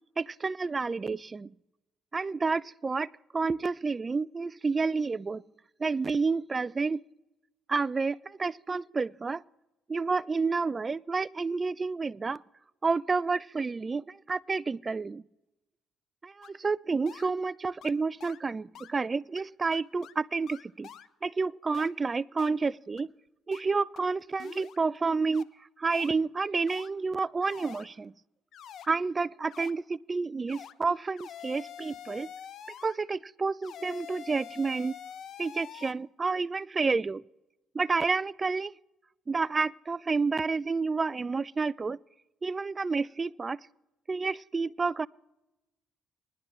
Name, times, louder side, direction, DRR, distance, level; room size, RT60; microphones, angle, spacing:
voice 1, 0.2-1.5 2.1-5.4 5.8-7.0 7.7-9.4 9.9-12.4 12.8-15.2 16.2-20.9 21.2-23.1 23.5-25.5 25.8-28.1 28.9-32.3 32.8-34.9 35.4-37.2 37.7-38.7 39.3-42.0 42.4-43.6 44.1-45.1, right 4 dB, 35° right, 0.3 m, -30 dB
sound 1, 16.4-16.5 17.1-17.3 17.8-17.9 18.2-18.4 18.7-18.9 19.4-19.5 19.7-20.1 20.5-21.1 21.7-21.9 22.4-22.5 23.0-23.1 23.5-23.6 24.0-24.1 24.4-24.8 25.3-25.4 25.9-26.1 26.7-26.9 27.4-27.9 28.5-28.9 29.5-29.7 30.5-30.7 31.2-33.0 33.6-35.9, left 9 dB, 65° left, 0.6 m, -46 dB
20.0 x 11.0 x 3.1 m
supercardioid pair, 60°, 0 cm